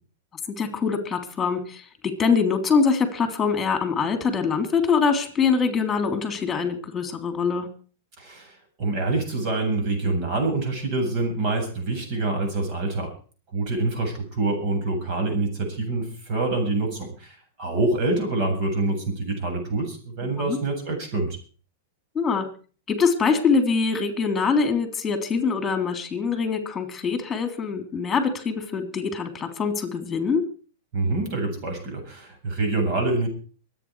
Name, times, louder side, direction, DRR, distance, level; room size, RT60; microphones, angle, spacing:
voice 1, 0.6-1.9 2.2-7.7 20.4-20.6 22.2-22.5 22.9-30.4, left 5 dB, 15° left, 7 dB, 3.4 m, -24 dB
voice 2, 8.2-13.1 13.5-21.4 30.9-33.3, right 2 dB, 45° right, 4 dB, 7.8 m, -26 dB
24.0 x 9.2 x 4.9 m, 0.40 s
hypercardioid pair, 130°, 0 cm